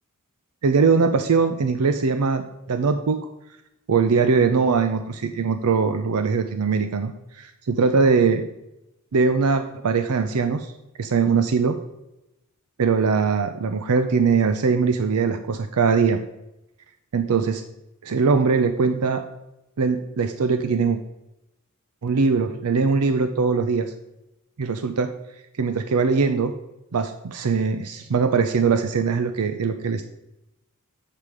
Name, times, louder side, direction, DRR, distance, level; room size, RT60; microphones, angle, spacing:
voice 1, 0.6-3.2 3.9-8.4 9.1-10.7 11.0-11.8 12.8-16.2 17.1-17.6 18.0-19.2 19.8-21.0 22.0-23.9 24.6-25.1 25.6-26.5 26.9-30.1, right 5 dB, 85° right, 8 dB, 0.5 m, -21 dB
7.5 x 6.7 x 4.8 m, 0.91 s
head